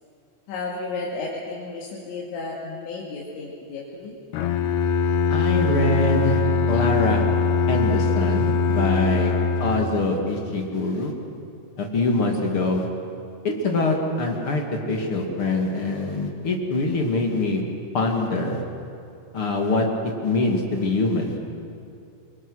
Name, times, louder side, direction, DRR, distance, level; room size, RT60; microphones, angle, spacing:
voice 1, 0.5-4.2, left 3 dB, 85° left, -4 dB, 4.7 m, -33 dB
Bowed string instrument, 4.3-10.2, left 4 dB, 70° left, 3.1 m, -22 dB
voice 2, 5.3-7.3 7.7-9.3 9.6-11.1 11.8-12.9 13.4-17.6 17.9-18.6 19.3-19.9 20.2-21.4, left 2 dB, 40° left, 1 dB, 2.3 m, -24 dB
28.5 x 23.5 x 6.4 m, 2.5 s
omnidirectional pair, 5.1 m